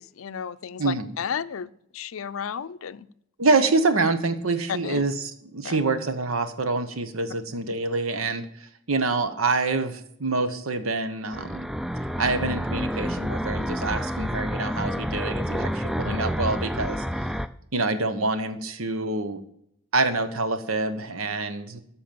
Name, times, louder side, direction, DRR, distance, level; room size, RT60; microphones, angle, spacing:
voice 1, 0.0-3.1 4.8-5.0 5.6-5.8 16.0-16.2, left 7 dB, 80° left, 15 dB, 0.5 m, -33 dB
voice 2, 0.8-1.1 3.4-11.7 12.2-17.3 17.7-19.4 19.9-21.8, right 3 dB, 90° right, 10 dB, 1.1 m, -26 dB
sound 1, 11.3-17.5, equal, ahead, 0.3 m, -29 dB
13.0 x 4.5 x 6.9 m, 0.72 s
head